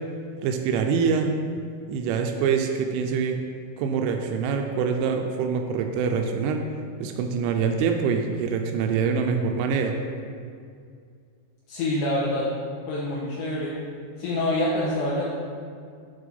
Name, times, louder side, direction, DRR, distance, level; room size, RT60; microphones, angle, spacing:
voice 1, 0.4-1.4 1.9-3.4 3.8-6.7 7.0-10.0, right 6 dB, 85° right, 4 dB, 2.6 m, -25 dB
voice 2, 11.7-12.5 12.9-13.7 14.2-15.2, left 1 dB, 80° left, -7 dB, 2.6 m, -26 dB
9.0 x 3.3 x 5.3 m, 2.2 s
omnidirectional pair, 5.8 m